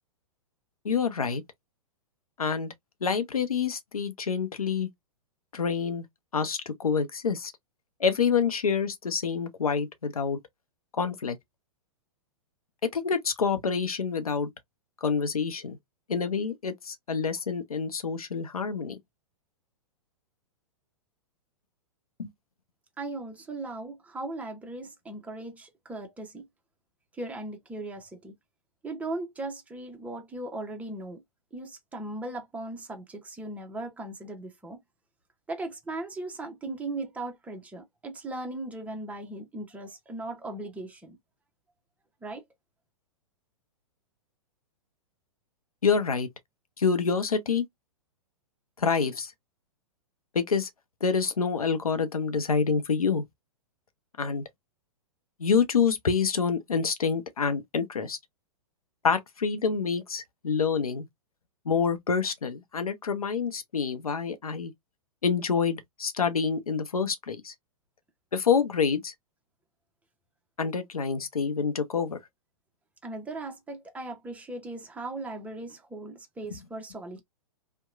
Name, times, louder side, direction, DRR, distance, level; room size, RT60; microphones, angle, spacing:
voice 1, 0.8-1.4 2.4-2.7 3.0-4.9 5.5-6.0 6.3-7.5 8.0-10.4 11.0-11.4 12.8-14.5 15.0-15.8 16.1-19.0 22.2-22.3 45.8-46.3 46.8-47.7 48.8-49.3 50.3-50.7 51.0-53.2 54.2-54.4 55.4-58.2 59.0-61.0 61.7-64.7 65.2-67.5 68.3-69.1 70.6-72.2 76.5-76.6, left 6 dB, 90° left, 0.6 m, -27 dB
voice 2, 23.0-26.4 27.1-28.3 28.8-31.2 31.5-34.8 35.5-41.2 42.2-42.4 73.0-77.2, right 2 dB, 10° right, 0.7 m, -38 dB
2.8 x 2.1 x 2.4 m
hypercardioid pair, 110°, 18 cm